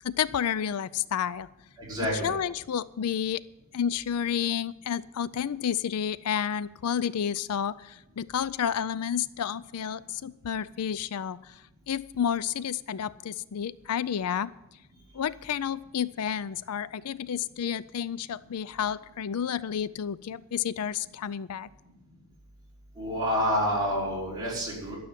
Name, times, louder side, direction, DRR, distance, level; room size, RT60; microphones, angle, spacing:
voice 1, 0.0-1.5 2.2-3.4 3.7-11.5 11.9-14.5 15.1-21.7, left 8 dB, 85° left, 18 dB, 0.4 m, -30 dB
voice 2, 1.8-2.3 23.0-25.0, equal, 20° right, -7 dB, 5.5 m, -28 dB
12.5 x 7.0 x 9.1 m, 0.92 s
head